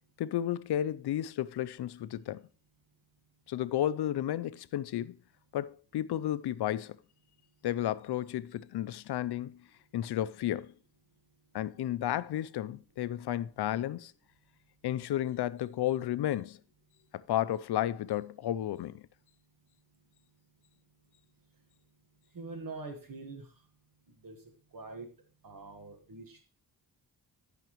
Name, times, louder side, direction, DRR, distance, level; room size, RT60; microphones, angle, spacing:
voice 1, 0.2-2.4 3.5-5.2 5.5-7.0 7.6-9.6 9.9-10.7 11.5-14.1 14.8-16.6 17.1-19.0, left 12 dB, 75° left, 0.6 m, -32 dB
voice 2, 22.3-23.5 24.2-24.4 24.7-25.1 25.4-26.4, right 3 dB, 55° right, 1.6 m, -44 dB
15.0 x 6.0 x 3.0 m
wide cardioid pair, 130°, 39 cm